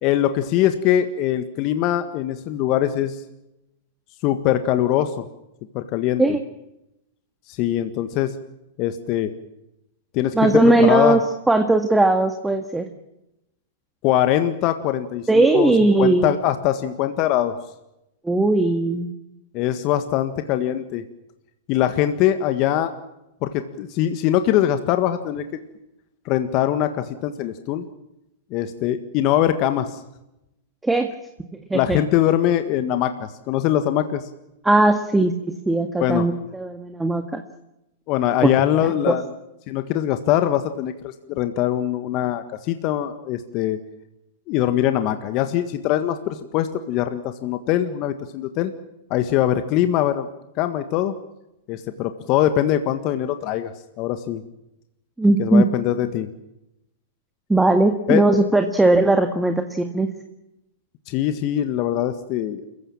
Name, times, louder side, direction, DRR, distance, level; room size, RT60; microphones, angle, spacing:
voice 1, 0.0-3.2 4.2-5.2 5.7-6.2 7.5-8.3 8.8-9.3 10.1-11.2 14.0-15.7 16.0-17.5 19.5-21.0 21.7-22.9 23.4-25.5 26.2-27.9 28.5-30.0 31.7-34.3 36.0-36.3 38.1-39.3 39.7-43.8 44.5-48.7 49.1-50.3 50.6-51.1 51.7-53.7 54.0-54.4 55.4-56.3 58.1-58.2 61.1-62.6, left 12 dB, 45° left, 9 dB, 1.6 m, -22 dB
voice 2, 10.3-11.2 11.5-12.9 15.3-16.3 18.2-19.1 30.8-31.1 31.5-32.0 34.6-37.4 38.4-38.5 39.1-39.2 55.2-55.6 57.5-60.1, right 2 dB, 5° right, 6 dB, 1.8 m, -18 dB
28.5 x 15.5 x 8.7 m, 0.90 s
hypercardioid pair, 105°, 0 cm